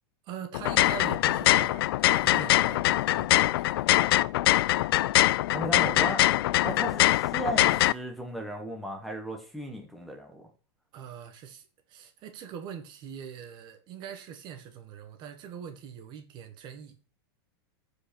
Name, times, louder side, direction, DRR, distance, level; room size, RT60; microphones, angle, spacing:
voice 1, 0.2-3.9 10.9-16.9, right 8 dB, 35° right, 1.4 m, -43 dB
sound 1, 0.5-7.9, left 15 dB, 70° left, 0.4 m, -23 dB
voice 2, 5.5-6.2 6.6-10.5, right 1 dB, ahead, 1.4 m, -35 dB
14.0 x 5.2 x 4.4 m
supercardioid pair, 145°, 13 cm